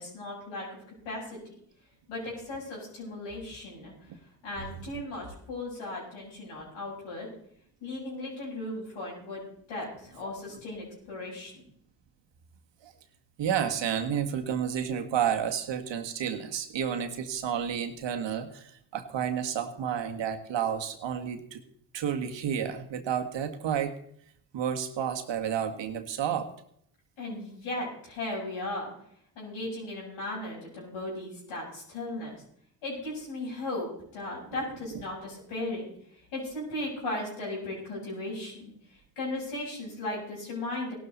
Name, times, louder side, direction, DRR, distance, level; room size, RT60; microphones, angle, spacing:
voice 1, 0.0-1.4 2.1-3.9 4.4-7.3 7.8-11.6 27.2-28.9 29.3-32.4 32.8-35.9 36.3-41.0, left 2 dB, 75° left, -4 dB, 7.9 m, -36 dB
voice 2, 13.4-21.6 21.9-24.0 24.5-26.5, right 8 dB, 60° right, 6 dB, 1.8 m, -31 dB
17.0 x 12.5 x 4.1 m, 0.66 s
hypercardioid pair, 45°, 49 cm